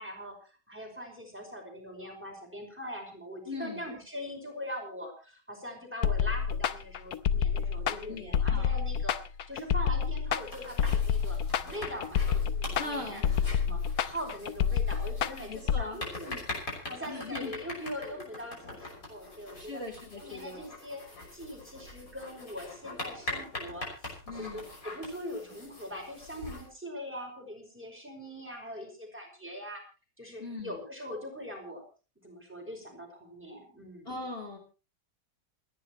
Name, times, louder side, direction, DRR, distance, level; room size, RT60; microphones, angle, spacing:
voice 1, 0.0-9.1 9.5-11.4 11.7-19.8 20.2-21.0 21.3-29.8 30.2-31.8 32.2-34.1, equal, 5° right, 1 dB, 5.3 m, -42 dB
voice 2, 3.5-3.8 7.9-8.7 12.8-13.4 15.5-16.0 17.1-17.5 18.0-18.2 19.5-20.7 24.3-24.6 30.4-30.8 34.1-34.6, left 2 dB, 35° left, 1 dB, 3.5 m, -40 dB
sound 1, 6.0-15.8, left 7 dB, 65° left, 1.3 m, -28 dB
sound 2, 10.3-26.7, left 2 dB, 50° left, 6.3 m, -43 dB
28.5 x 10.5 x 3.1 m, 0.35 s
omnidirectional pair, 1.9 m